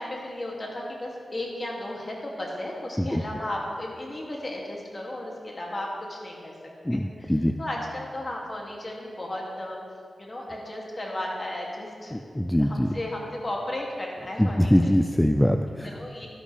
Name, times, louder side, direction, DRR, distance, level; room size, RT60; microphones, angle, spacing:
voice 1, 0.0-6.5 6.9-7.3 7.6-9.8 10.2-12.2 12.6-14.9 16.0-16.3, left 1 dB, 40° left, -2 dB, 2.5 m, -34 dB
voice 2, 6.8-7.5 12.1-13.0 14.4-16.0, equal, 10° left, 6 dB, 0.4 m, -23 dB
12.0 x 11.5 x 3.4 m, 2.1 s
cardioid pair, 60°, 0 cm